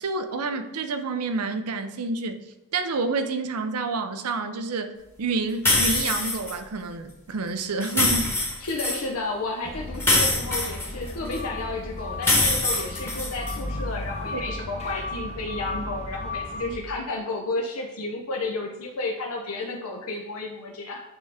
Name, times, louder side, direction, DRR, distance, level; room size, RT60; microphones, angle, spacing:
voice 1, 0.0-2.4 2.7-4.9 5.2-8.3 14.3-14.4, right 3 dB, 85° right, 8 dB, 0.6 m, -28 dB
sound 1, 5.7-6.5 7.8-9.0 10.0-11.4 12.2-13.6, left 2 dB, 10° left, 1.1 m, -23 dB
voice 2, 8.6-21.0, left 2 dB, 80° left, 0 dB, 0.7 m, -32 dB
sound 2, 9.6-16.8, left 2 dB, 30° left, 0.7 m, -34 dB
8.1 x 3.5 x 3.4 m, 0.97 s
head